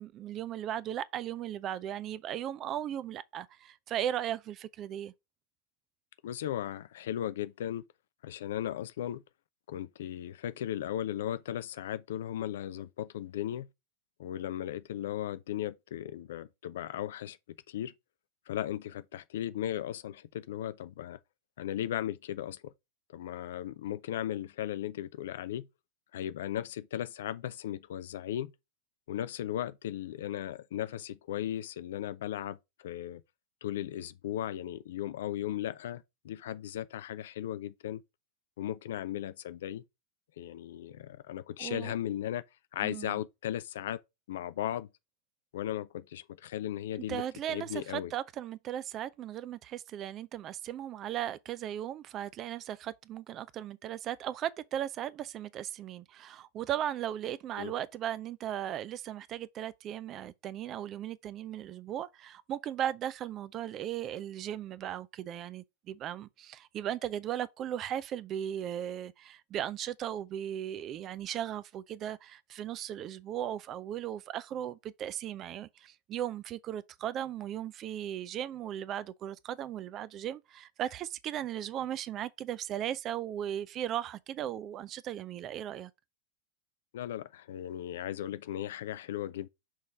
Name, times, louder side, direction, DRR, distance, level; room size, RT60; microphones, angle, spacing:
voice 1, 0.0-5.1 41.6-41.9 42.8-43.2 47.1-85.9, right 11 dB, 30° right, 0.4 m, -37 dB
voice 2, 6.2-7.8 8.2-9.2 9.7-13.7 14.2-17.4 17.7-17.9 18.5-21.2 21.6-22.7 23.1-25.7 26.1-28.5 29.1-33.2 33.6-38.0 38.6-39.8 40.4-42.4 42.7-44.0 44.3-44.9 45.5-48.1 57.6-57.7 86.9-89.5, left 11 dB, 60° left, 0.5 m, -36 dB
6.3 x 3.2 x 4.8 m
figure-of-eight pair, 90°, 0 cm